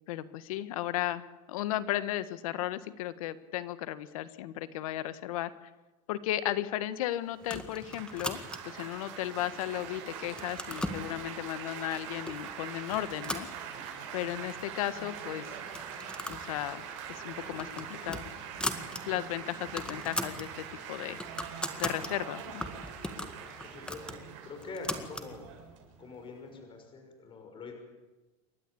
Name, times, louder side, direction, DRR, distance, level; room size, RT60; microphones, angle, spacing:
voice 1, 0.1-1.2 1.5-5.5 6.1-8.4 8.6-13.5 14.1-15.5 16.3-16.8 17.1-18.2 19.0-21.2 21.8-22.6, left 14 dB, 80° left, 13 dB, 1.6 m, -35 dB
sound 1, 7.4-8.8 9.4-9.9 10.2-11.0 11.8-11.9 12.3-12.5 12.9-14.1 14.4-14.5 14.8-14.9 15.6-16.5 16.8-17.0 17.4-19.0 19.4-19.5 19.6-20.5 20.9-22.1 22.6-25.3, left 1 dB, 5° left, 1.9 m, -38 dB
Laughter / Applause / Chatter, 7.4-26.6, right 7 dB, 60° right, 7.0 m, -43 dB
voice 2, 23.6-25.5 26.0-27.7, left 3 dB, 30° left, 4 dB, 6.4 m, -45 dB
29.0 x 12.5 x 8.7 m, 1.1 s
supercardioid pair, 135°, 18 cm